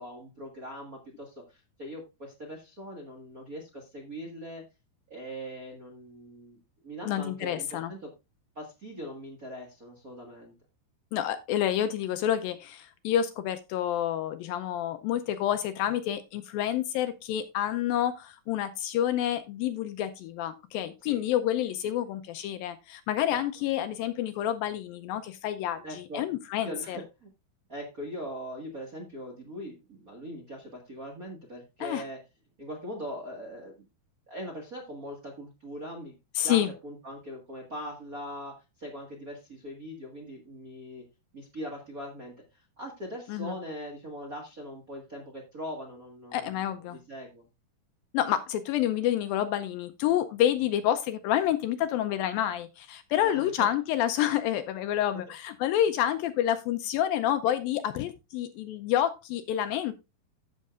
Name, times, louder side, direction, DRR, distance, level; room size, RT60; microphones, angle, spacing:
voice 1, 0.0-4.6 5.1-6.6 6.8-8.1 8.5-10.5 21.0-21.2 23.3-23.4 23.8-23.9 25.8-26.2 26.6-27.3 27.7-32.2 32.6-33.8 34.3-36.1 36.4-41.0 41.3-47.4 53.2-53.7, equal, 55° right, 0 dB, 0.9 m, -41 dB
voice 2, 7.1-7.9 11.1-27.0 31.8-32.0 36.4-36.7 43.3-43.5 46.3-47.0 48.1-59.9, left 11 dB, 80° left, 10 dB, 2.2 m, -28 dB
15.0 x 6.4 x 2.4 m, 0.25 s
omnidirectional pair, 4.6 m